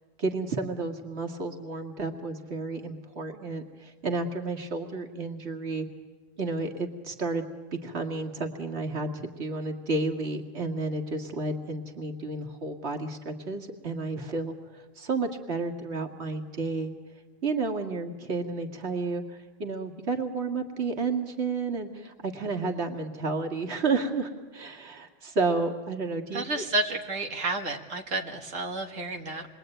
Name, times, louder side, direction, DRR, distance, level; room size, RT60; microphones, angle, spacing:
voice 1, 0.2-5.9 6.4-7.5 7.8-16.9 17.4-26.6, right 3 dB, 55° right, 4 dB, 2.3 m, -31 dB
voice 2, 26.3-29.5, right 2 dB, 85° right, 2 dB, 2.1 m, -31 dB
28.0 x 22.5 x 9.1 m, 1.3 s
omnidirectional pair, 1.3 m